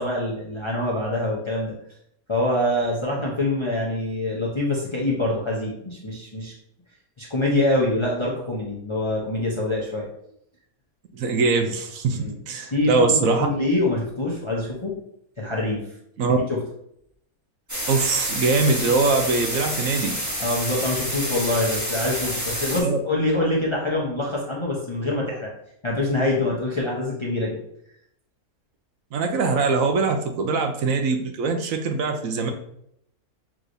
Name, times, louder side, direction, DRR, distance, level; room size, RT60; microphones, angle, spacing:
voice 1, 0.0-1.7 2.3-6.5 7.2-10.1 12.2-12.3 12.7-14.9 15.4-15.8 16.5-16.6 20.4-25.5 25.8-27.6, left 1 dB, 25° left, -4 dB, 0.6 m, -25 dB
voice 2, 11.1-13.5 16.2-16.4 17.9-20.1 22.8-23.0 29.1-32.5, right 4 dB, 70° right, 4 dB, 1.0 m, -22 dB
sound 1, 17.7-22.8, equal, 15° right, 1.0 m, -28 dB
6.0 x 3.1 x 2.6 m, 0.73 s
omnidirectional pair, 1.6 m